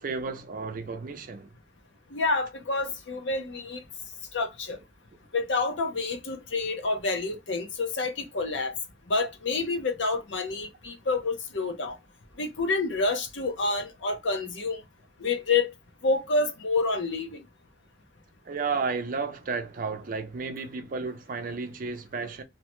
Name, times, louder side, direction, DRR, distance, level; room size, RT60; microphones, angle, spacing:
voice 1, 0.0-1.5 18.5-22.4, right 4 dB, 50° right, 0.5 m, -32 dB
voice 2, 2.1-3.8 4.3-4.8 5.3-8.7 9.1-12.0 12.4-14.8 15.2-15.7 16.0-17.4, left 3 dB, 85° left, 0.7 m, -28 dB
2.7 x 2.1 x 2.9 m
head